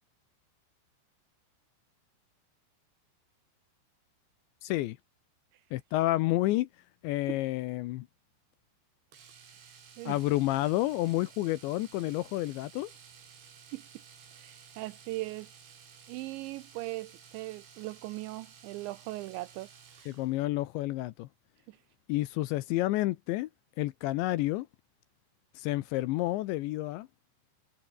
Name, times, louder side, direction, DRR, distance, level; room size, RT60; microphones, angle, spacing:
voice 1, 4.6-5.0 5.7-6.7 7.0-8.1 10.1-12.9 20.1-21.3 22.1-23.5 23.8-24.7 25.6-27.1, left 17 dB, 80° left, 2.8 m, -30 dB
Domestic sounds home sounds, 9.1-20.4 22.5-22.6 22.9-23.0, right 7 dB, 65° right, 7.1 m, -54 dB
voice 2, 9.7-10.2 13.7-13.8 14.4-15.5 16.1-19.7 21.7-21.8, right 19 dB, 85° right, 2.6 m, -39 dB
omnidirectional pair, 5.8 m